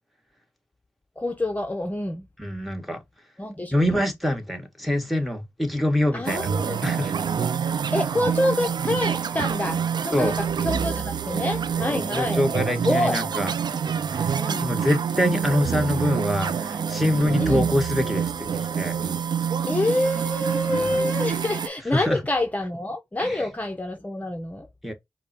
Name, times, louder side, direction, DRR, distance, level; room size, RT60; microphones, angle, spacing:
voice 1, 1.2-2.3 3.4-3.8 6.1-6.8 7.9-12.4 12.8-13.2 14.4-14.7 17.4-17.7 19.7-24.7, left 1 dB, 20° left, 0.8 m, -27 dB
voice 2, 2.4-3.0 3.7-6.5 6.8-7.1 10.1-10.3 11.9-13.5 14.6-19.0 20.8-20.9 21.9-22.2 23.2-23.4 24.8-24.9, left 1 dB, ahead, 1.5 m, -25 dB
sound 1, 6.3-21.7, right 7 dB, 75° right, 0.4 m, -27 dB
5.1 x 2.1 x 4.3 m
cardioid pair, 45°, 8 cm